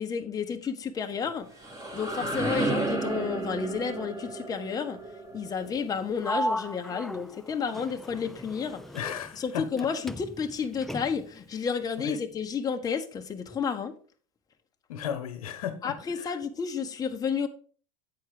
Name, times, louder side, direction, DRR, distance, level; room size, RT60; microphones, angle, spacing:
voice 1, 0.0-1.5 1.9-5.0 5.3-8.8 9.3-13.9 15.8-17.5, left 6 dB, 20° left, 0.9 m, -31 dB
sound 1, 1.2-7.0, right 2 dB, 20° right, 2.3 m, -33 dB
Sliding door, 6.2-9.8 10.1-11.4, equal, ahead, 0.4 m, -36 dB
voice 2, 8.9-9.9 12.0-12.2 14.9-16.3, left 8 dB, 85° left, 1.1 m, -36 dB
8.6 x 4.5 x 4.9 m
hypercardioid pair, 110°, 18 cm